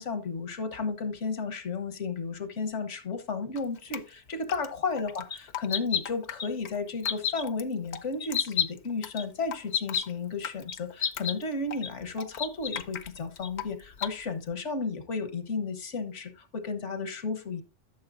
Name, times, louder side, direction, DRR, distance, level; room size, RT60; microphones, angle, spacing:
voice 1, 0.0-17.6, left 4 dB, 85° left, 1.6 m, -33 dB
Drip, 3.6-14.5, left 8 dB, 70° left, 1.0 m, -42 dB
sound 1, 5.3-5.4 5.7-6.0 6.4-6.5 7.0-7.4 8.2-8.7 9.2-9.3 9.7-10.0 10.7-10.8 11.0-11.3 11.8-11.9 12.4-12.8 13.4-13.5 14.0-14.1, left 8 dB, 45° left, 0.6 m, -29 dB
13.5 x 6.6 x 2.6 m
omnidirectional pair, 1.2 m